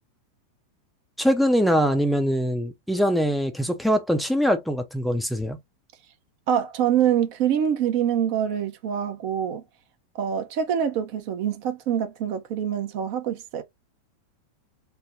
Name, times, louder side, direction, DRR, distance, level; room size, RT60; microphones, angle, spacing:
voice 1, 1.2-5.6, equal, ahead, 0.6 m, -23 dB
voice 2, 6.5-9.6 10.2-13.6, right 9 dB, 45° right, 0.7 m, -25 dB
3.4 x 2.2 x 4.0 m
figure-of-eight pair, 90°, 0 cm